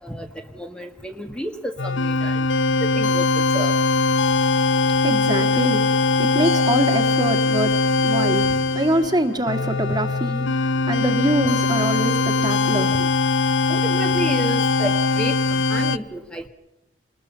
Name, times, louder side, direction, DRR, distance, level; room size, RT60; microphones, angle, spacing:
voice 1, 0.5-2.5 2.8-3.7 8.5-8.6 13.7-16.5, right 1 dB, 5° left, 1.6 m, -31 dB
sound 1, 1.8-16.0, left 3 dB, 75° left, 0.8 m, -21 dB
voice 2, 4.7-13.1, right 1 dB, 20° right, 1.9 m, -25 dB
29.5 x 20.5 x 5.7 m
head